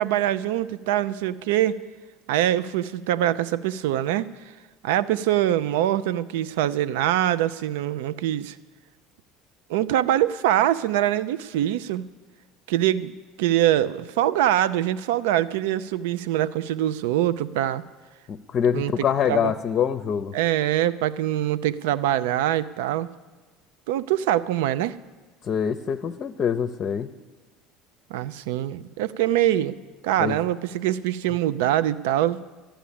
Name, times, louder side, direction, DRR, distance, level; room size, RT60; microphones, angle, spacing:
voice 1, 0.0-1.8 2.3-4.3 4.8-8.6 9.7-12.0 12.7-17.8 18.7-19.5 20.3-23.1 23.9-25.0 28.1-29.8 30.0-32.4, right 12 dB, 70° right, 16 dB, 0.5 m, -24 dB
voice 2, 18.3-20.3 25.4-27.1 30.2-30.4, left 8 dB, 40° left, 7 dB, 0.6 m, -25 dB
12.0 x 10.0 x 8.6 m, 1.3 s
hypercardioid pair, 70°, 0 cm